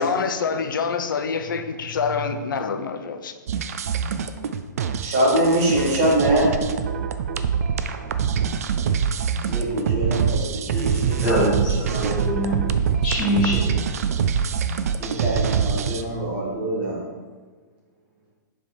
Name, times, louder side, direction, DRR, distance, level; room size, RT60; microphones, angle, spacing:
voice 1, 0.0-3.3, left 5 dB, 90° left, 0.6 m, -26 dB
sound 1, 3.5-16.0, right 7 dB, 50° right, 0.3 m, -24 dB
voice 2, 5.0-6.5 9.4-10.9 15.0-17.0, right 1 dB, 20° right, 1.2 m, -23 dB
voice 3, 11.2-12.6 13.0-13.7, equal, 5° left, 1.7 m, -24 dB
7.4 x 3.5 x 4.3 m
hypercardioid pair, 180°, 11 cm